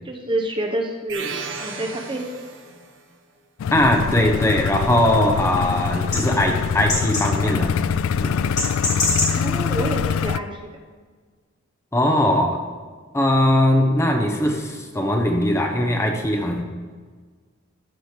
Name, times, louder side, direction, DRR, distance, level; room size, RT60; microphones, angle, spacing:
voice 1, 0.0-2.2 9.3-10.7, right 1 dB, 25° right, 3 dB, 0.8 m, -28 dB
sound 1, 1.1-3.0, right 5 dB, 65° right, 1.1 m, -34 dB
sound 2, 3.6-10.4, left 7 dB, 85° left, 0.3 m, -24 dB
voice 2, 3.7-7.8 8.2-8.4 11.9-12.6 13.1-16.6, left 1 dB, 15° left, 2 dB, 1.0 m, -20 dB
sound 3, 3.8-10.3, left 2 dB, 35° left, 3.4 m, -29 dB
14.0 x 5.1 x 5.0 m, 1.5 s
head